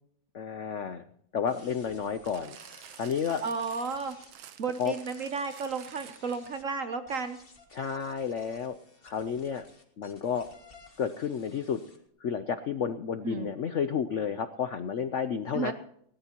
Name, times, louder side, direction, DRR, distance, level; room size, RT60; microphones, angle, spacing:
voice 1, 0.3-1.0 1.3-2.6 3.0-3.4 4.8-4.9 7.7-8.8 9.0-9.6 10.0-10.5 11.0-11.8 12.2-15.7, left 7 dB, 65° left, 10 dB, 0.7 m, -31 dB
sound 1, 1.5-6.6 7.1-12.0, left 3 dB, 30° left, 1.9 m, -57 dB
sound 2, 2.3-6.7 7.4-7.5, right 11 dB, 85° right, 1.6 m, -50 dB
voice 2, 3.4-4.2 4.6-7.4 13.2-13.5 15.5-15.7, right 5 dB, 60° right, 9 dB, 0.9 m, -33 dB
19.5 x 18.0 x 2.9 m, 0.68 s
omnidirectional pair, 2.1 m